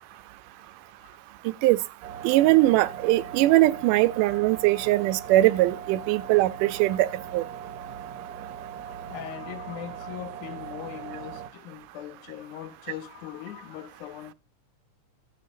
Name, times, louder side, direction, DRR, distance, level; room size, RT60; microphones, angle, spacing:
sound 1, 2.0-11.5, right 8 dB, 75° right, 1.8 m, -40 dB
voice 1, 2.2-7.1 7.3-7.4, right 17 dB, 90° right, 2.2 m, -21 dB
voice 2, 4.3-4.9 6.1-6.2 8.9-14.3, left 11 dB, 75° left, 2.3 m, -41 dB
14.0 x 9.1 x 2.6 m
omnidirectional pair, 3.6 m